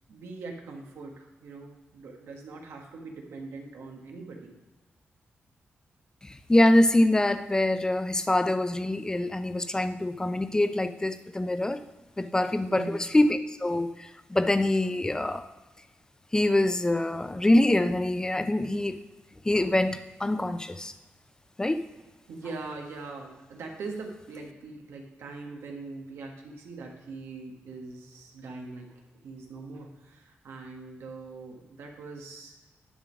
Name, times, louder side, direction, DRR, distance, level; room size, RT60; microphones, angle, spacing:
voice 1, 0.1-4.5 12.7-13.1 22.3-32.7, right 3 dB, 90° right, 1 dB, 1.4 m, -42 dB
voice 2, 6.2-11.8 12.2-15.4 16.3-19.0 19.4-20.9 21.6-21.9, left 1 dB, 15° left, 10 dB, 0.6 m, -25 dB
10.5 x 3.7 x 6.2 m, 1.1 s
cardioid pair, 75°, 4 cm